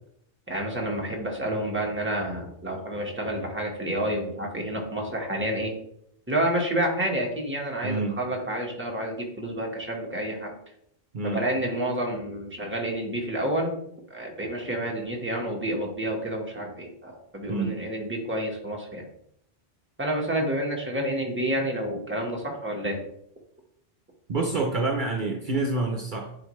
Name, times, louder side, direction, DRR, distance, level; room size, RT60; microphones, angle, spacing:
voice 1, 0.5-5.7 6.3-10.6 11.2-13.8 14.1-19.1 20.0-23.0, right 1 dB, 10° right, -1 dB, 1.5 m, -29 dB
voice 2, 7.8-8.2 11.1-11.4 17.5-17.8 24.3-26.3, right 3 dB, 55° right, 2 dB, 0.9 m, -27 dB
10.0 x 4.2 x 3.2 m, 0.73 s
omnidirectional pair, 1.0 m